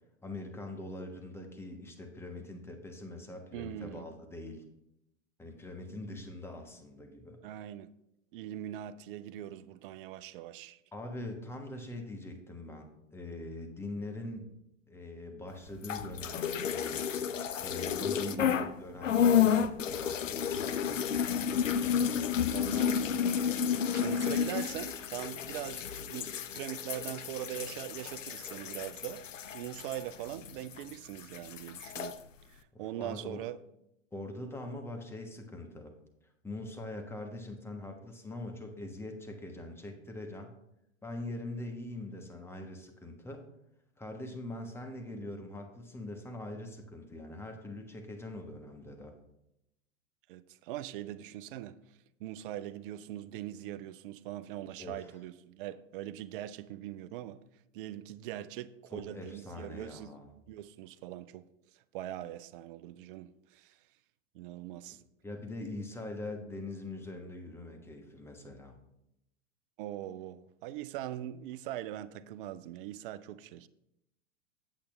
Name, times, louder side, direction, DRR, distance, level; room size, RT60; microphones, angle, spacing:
voice 1, 0.2-4.6 5.4-7.4 10.9-14.5 14.9-17.1 17.6-21.7 32.7-33.4 34.1-35.9 36.4-40.5 41.0-43.4 44.0-49.1 54.8-55.1 58.9-60.3 64.9-68.8, left 2 dB, 5° left, 1.3 m, -43 dB
voice 2, 3.5-4.1 7.4-7.9 8.3-10.8 18.2-18.8 22.5-29.2 29.5-32.2 32.5-33.6 50.3-51.8 52.2-57.4 57.7-60.1 60.5-61.4 61.9-63.8 64.3-65.0 69.8-73.7, right 13 dB, 45° right, 0.5 m, -42 dB
sound 1, 15.8-18.7 19.0-30.9 31.2-32.1, left 8 dB, 85° left, 0.6 m, -31 dB
8.5 x 8.1 x 3.3 m
figure-of-eight pair, 100°, 37 cm